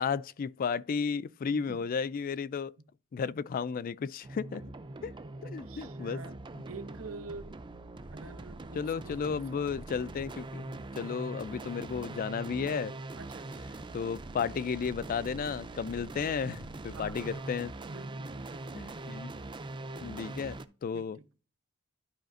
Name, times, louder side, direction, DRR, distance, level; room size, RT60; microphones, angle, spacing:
voice 1, 0.0-2.7 3.1-4.6 5.0-5.1 5.4-6.2 8.8-12.9 13.9-17.7 18.7-19.3 20.0-20.6 20.8-21.2, left 6 dB, 45° left, 0.3 m, -33 dB
voice 2, 1.5-1.9 2.8-2.9 5.4-7.6 8.1-9.9 13.2-13.9 16.9-17.6 17.9-18.7 20.2-20.6 20.9-21.3, right 3 dB, 80° right, 0.8 m, -48 dB
sound 1, 4.2-20.6, right 2 dB, 25° right, 0.5 m, -43 dB
12.0 x 4.9 x 2.5 m
head